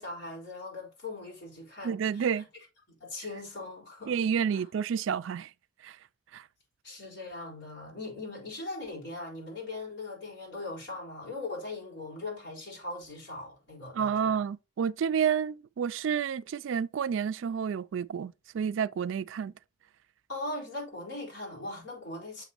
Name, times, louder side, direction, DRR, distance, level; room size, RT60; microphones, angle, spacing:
voice 1, 0.0-2.4 2.9-4.2 4.5-4.6 6.8-14.4 20.3-22.4, left 2 dB, 60° left, 4.4 m, -40 dB
voice 2, 1.8-2.5 4.1-5.5 5.8-6.0 6.3-6.4 13.9-19.5, right 7 dB, 75° right, 0.3 m, -30 dB
7.1 x 6.1 x 2.9 m
head